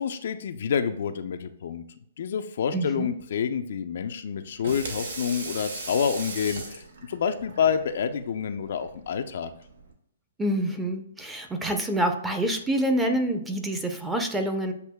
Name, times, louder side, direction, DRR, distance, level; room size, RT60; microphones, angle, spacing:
voice 1, 0.0-1.8 2.2-9.5, left 7 dB, 60° left, 8 dB, 0.4 m, -28 dB
voice 2, 2.7-3.1 10.4-14.7, right 1 dB, 10° right, 5 dB, 0.6 m, -27 dB
Water tap faucet / Sink (filling or washing), 4.4-9.9, right 2 dB, 75° right, 1.0 m, -39 dB
7.9 x 2.7 x 2.2 m, 0.73 s
hypercardioid pair, 130°, 0 cm